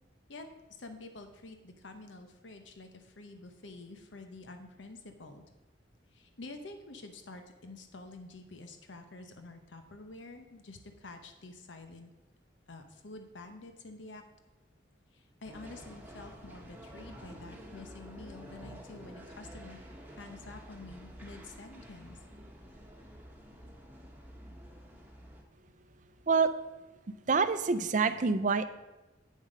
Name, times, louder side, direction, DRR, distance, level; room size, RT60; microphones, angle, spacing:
voice 1, 0.3-5.4 6.1-12.1 12.7-14.2 15.1-22.2, left 2 dB, 85° left, 6 dB, 0.9 m, -48 dB
sound 1, 15.4-25.4, equal, 10° right, 1.2 m, -49 dB
voice 2, 27.1-28.6, right 4 dB, 45° right, 12 dB, 0.5 m, -27 dB
8.6 x 7.4 x 5.2 m, 1.1 s
head